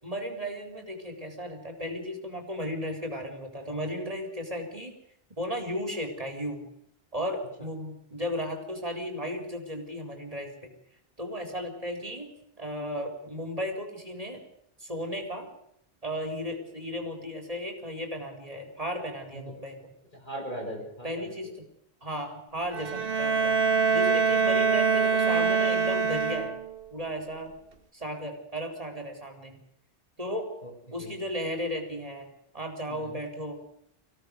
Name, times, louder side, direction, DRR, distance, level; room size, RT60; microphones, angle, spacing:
voice 1, 0.0-4.9 5.4-6.6 7.1-10.7 11.2-14.4 14.8-15.5 16.0-19.8 21.0-21.6 22.0-23.6 23.9-26.5 26.9-27.6 27.9-29.6 30.2-30.5 30.9-33.6, equal, 35° right, 4 dB, 4.5 m, -35 dB
voice 2, 20.1-21.5 30.6-31.2 32.9-33.2, right 1 dB, 50° left, 1 dB, 7.2 m, -40 dB
Bowed string instrument, 22.7-26.8, right 5 dB, 65° right, 1.5 m, -24 dB
25.0 x 17.0 x 6.8 m, 0.76 s
omnidirectional pair, 1.0 m